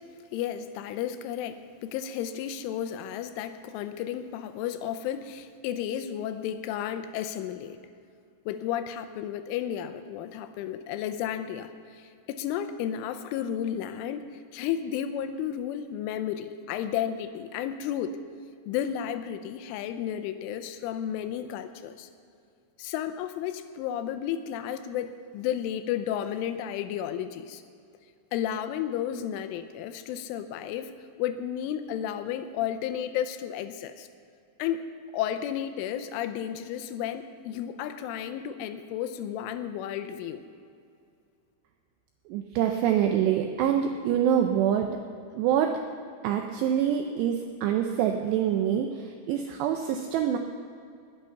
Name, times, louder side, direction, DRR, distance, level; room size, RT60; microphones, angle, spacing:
voice 1, 0.3-7.8 8.5-18.2 18.7-22.1 22.8-27.6 28.3-30.9 31.2-34.1 34.6-34.9 35.1-40.5, left 10 dB, 85° left, 9 dB, 3.1 m, -32 dB
voice 2, 42.3-45.0 45.3-45.8 46.2-50.4, right 9 dB, 85° right, 5 dB, 2.4 m, -25 dB
19.5 x 8.9 x 5.7 m, 2.4 s
omnidirectional pair, 5.7 m